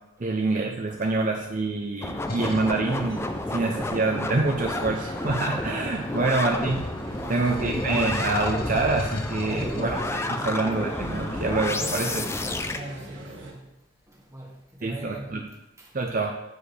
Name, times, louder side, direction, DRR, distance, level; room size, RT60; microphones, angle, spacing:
voice 1, 0.2-3.2 3.5-6.8 7.3-12.3 14.8-15.4 15.9-16.3, right 3 dB, 45° right, 2 dB, 0.6 m, -26 dB
voice 2, 0.7-1.2 6.0-6.4 7.1-7.7 9.3-9.9 10.7-10.8 12.5-16.0, right 1 dB, 15° right, -1 dB, 1.5 m, -44 dB
sound 1, 2.0-12.8, left 2 dB, 15° left, 0.5 m, -31 dB
sound 2, 2.3-2.8 4.1-6.0 6.4-10.5, left 2 dB, 50° left, 1.0 m, -36 dB
sound 3, 2.8-13.5, right 2 dB, 70° right, 1.5 m, -42 dB
14.0 x 5.1 x 3.4 m, 0.97 s
head